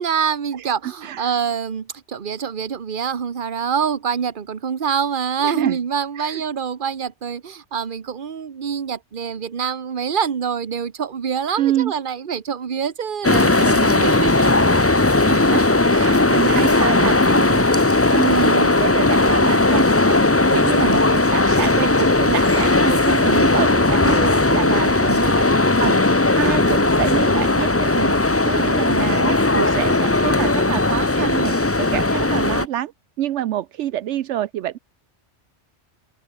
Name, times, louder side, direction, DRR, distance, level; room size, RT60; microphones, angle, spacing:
voice 1, 0.0-14.7 24.0-25.2, right 7 dB, 45° right, 1.2 m, -26 dB
voice 2, 0.6-1.3 5.4-5.8 6.2-6.4 11.6-11.9 15.3-20.2 20.5-24.2 24.4-26.0 26.4-28.1 28.4-32.9 33.2-34.8, right 12 dB, 75° right, 0.9 m, -27 dB
sound 1, 13.2-32.7, left 2 dB, 15° left, 0.7 m, -17 dB
omnidirectional pair, 1.2 m